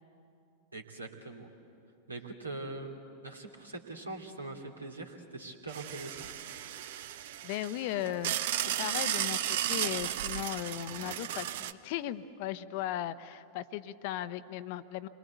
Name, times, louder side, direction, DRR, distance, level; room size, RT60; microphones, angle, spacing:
voice 1, 0.7-1.5 2.1-6.3, right 2 dB, 80° right, 2 dB, 2.7 m, -42 dB
sound 1, 5.7-11.7, right 11 dB, 55° right, 0.7 m, -34 dB
voice 2, 7.4-8.3 8.8-15.1, left 12 dB, 50° left, 13 dB, 0.8 m, -37 dB
28.0 x 22.5 x 8.2 m, 2.7 s
figure-of-eight pair, 90°, 0 cm